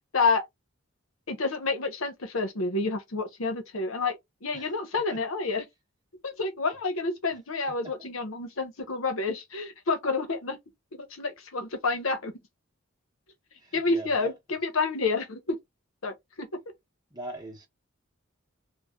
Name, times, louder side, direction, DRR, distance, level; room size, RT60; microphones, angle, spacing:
voice 1, 1.3-5.6 6.2-10.6 11.1-12.3 13.7-15.6 16.0-16.5, left 3 dB, 85° left, 0.9 m, -29 dB
voice 2, 4.5-5.2 7.8-8.1 13.6-14.3 17.1-17.7, right 2 dB, 20° right, 0.9 m, -41 dB
3.5 x 2.3 x 2.3 m
head